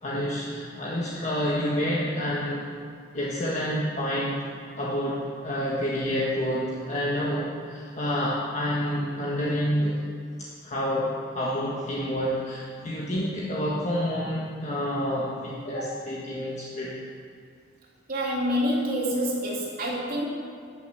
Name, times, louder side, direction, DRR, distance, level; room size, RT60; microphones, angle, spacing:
voice 1, 0.0-2.7 3.1-4.5 4.8-10.0 10.6-17.0, equal, 40° left, -6 dB, 1.5 m, -28 dB
voice 2, 18.1-20.3, equal, 55° right, -4 dB, 3.3 m, -27 dB
12.0 x 7.7 x 7.7 m, 2.2 s
head